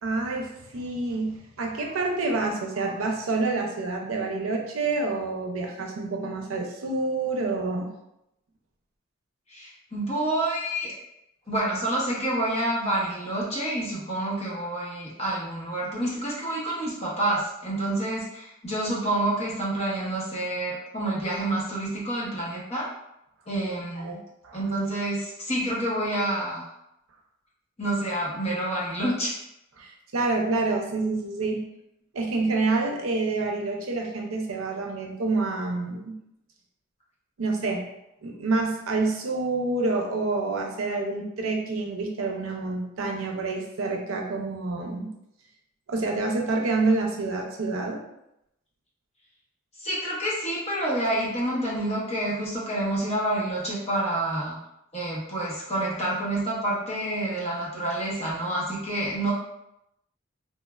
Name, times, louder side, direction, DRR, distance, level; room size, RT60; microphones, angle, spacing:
voice 1, 0.0-7.9 24.0-24.2 24.4-24.6 29.8-31.6 32.1-36.1 37.4-37.8 38.2-45.1 45.9-48.0, right 3 dB, 90° right, 1 dB, 0.5 m, -27 dB
voice 2, 9.5-10.9 11.5-22.9 23.5-24.2 24.5-26.6 27.8-29.3 49.8-54.6 54.9-59.3, right 1 dB, 30° left, -6 dB, 0.7 m, -28 dB
3.0 x 2.1 x 2.2 m, 0.83 s
head